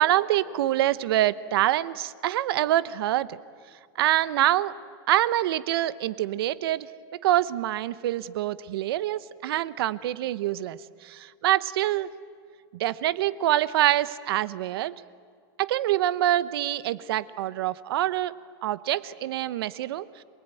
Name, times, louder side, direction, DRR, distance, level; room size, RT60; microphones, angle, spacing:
voice 1, 0.0-3.4 4.0-4.7 5.1-6.9 7.2-12.1 12.7-15.0 15.6-18.4 18.6-20.2, right 13 dB, 75° right, 17 dB, 0.9 m, -25 dB
27.0 x 20.0 x 9.1 m, 2.1 s
supercardioid pair, 175°, 13 cm